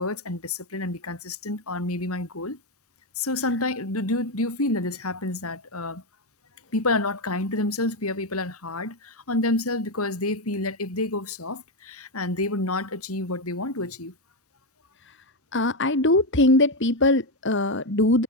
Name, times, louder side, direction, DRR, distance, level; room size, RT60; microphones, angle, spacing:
voice 1, 0.0-2.6 3.2-6.0 6.7-14.1, left 2 dB, 85° left, 4.3 m, -28 dB
voice 2, 15.5-18.2, left 2 dB, 55° left, 2.6 m, -21 dB
head